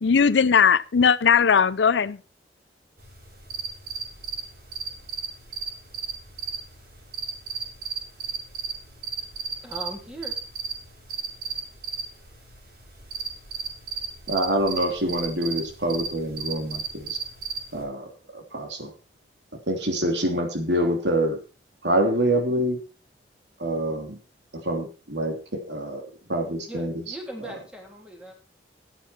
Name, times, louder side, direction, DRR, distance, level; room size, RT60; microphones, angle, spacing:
voice 1, 0.0-2.2, left 6 dB, 85° left, 0.5 m, -18 dB
sound 1, 3.0-17.8, right 6 dB, 60° right, 7.1 m, -35 dB
voice 2, 9.6-10.3 26.7-28.3, right 2 dB, 5° right, 3.3 m, -38 dB
voice 3, 14.3-17.2 17.7-18.9 19.7-21.4 21.8-22.8 23.6-24.2 24.5-26.0 26.3-26.9, right 1 dB, 80° right, 3.0 m, -26 dB
14.0 x 9.2 x 4.4 m
head